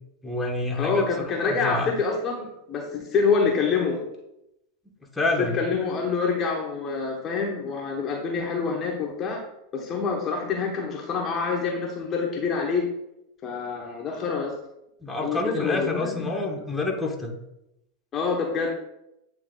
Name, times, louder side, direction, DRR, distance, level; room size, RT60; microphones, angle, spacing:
voice 1, 0.2-1.1 1.4-1.9 5.1-5.6 15.0-17.3, left 2 dB, 10° left, 0 dB, 1.3 m, -27 dB
voice 2, 0.8-4.1 5.4-9.4 9.7-12.9 13.4-14.6 15.2-16.3 18.1-18.7, left 5 dB, 30° left, 0 dB, 1.0 m, -26 dB
8.6 x 3.0 x 3.8 m, 0.84 s
hypercardioid pair, 105°, 0 cm